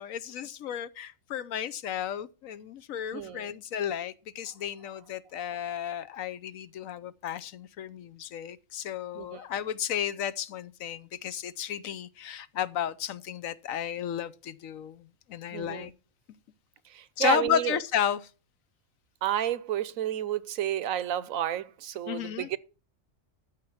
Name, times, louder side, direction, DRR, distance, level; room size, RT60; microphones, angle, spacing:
voice 1, 0.0-15.9 17.2-18.3 22.1-22.5, left 10 dB, 85° left, 1.2 m, -33 dB
voice 2, 3.1-3.5 9.2-9.4 15.5-15.9 16.9-17.8 19.2-22.6, right 11 dB, 90° right, 1.1 m, -31 dB
13.0 x 6.8 x 5.7 m
omnidirectional pair, 1.4 m